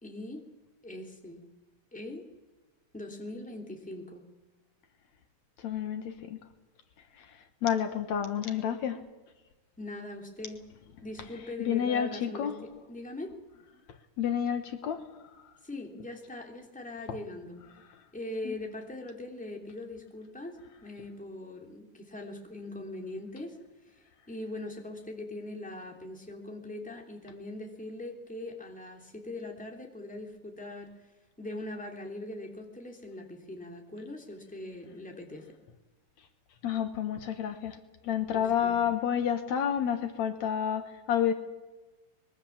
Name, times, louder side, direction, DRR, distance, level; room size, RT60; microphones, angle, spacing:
voice 1, 0.0-0.4 0.8-1.5 1.9-2.3 2.9-4.3 9.8-10.6 11.0-13.3 15.6-17.6 18.1-23.6 23.9-31.1 31.4-35.6 38.3-38.8, left 2 dB, 5° left, 2 dB, 2.9 m, -41 dB
voice 2, 5.6-6.4 7.1-9.0 11.6-12.5 14.2-15.1 17.1-17.2 18.4-18.5 36.6-37.8 38.0-41.3, left 9 dB, 70° left, 8 dB, 2.5 m, -30 dB
24.0 x 22.0 x 7.4 m, 1.1 s
omnidirectional pair, 3.4 m